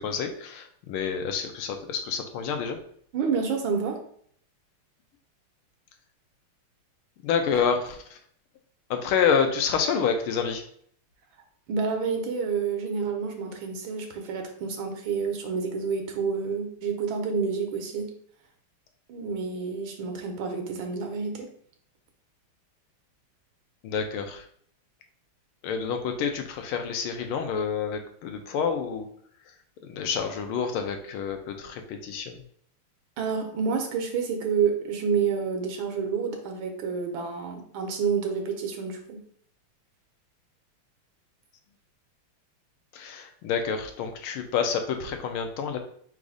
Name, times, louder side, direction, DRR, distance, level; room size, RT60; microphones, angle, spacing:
voice 1, 0.0-2.8 7.2-8.0 8.9-10.6 23.8-24.4 25.6-29.1 29.9-32.4 42.9-45.8, left 6 dB, 80° left, 5 dB, 1.5 m, -28 dB
voice 2, 3.1-4.0 11.7-18.1 19.1-21.5 33.2-39.2, right 5 dB, 70° right, 4 dB, 1.4 m, -29 dB
4.1 x 2.6 x 4.8 m, 0.62 s
omnidirectional pair, 2.4 m